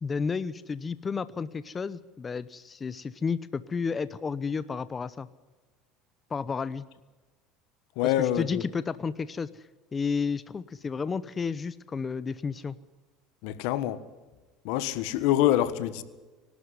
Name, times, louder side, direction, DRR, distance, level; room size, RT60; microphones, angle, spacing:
voice 1, 0.0-5.3 6.3-6.8 8.0-12.8, left 5 dB, 25° left, 0.7 m, -32 dB
voice 2, 8.0-8.6 13.4-14.0 14.6-16.0, left 13 dB, 75° left, 1.5 m, -25 dB
23.5 x 12.5 x 9.7 m
supercardioid pair, 110°, 0 cm